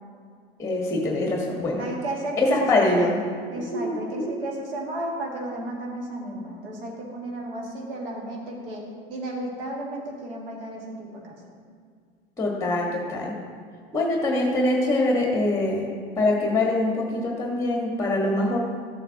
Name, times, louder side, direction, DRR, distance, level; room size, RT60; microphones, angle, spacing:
voice 1, 0.6-1.9 2.4-3.1 3.5-4.3 12.4-13.3 13.9-15.9 16.1-18.6, left 2 dB, 10° left, -1 dB, 1.5 m, -24 dB
voice 2, 1.8-11.6, right 1 dB, 70° right, -2 dB, 1.9 m, -33 dB
13.0 x 7.8 x 2.9 m, 2.1 s
figure-of-eight pair, 70°, 29 cm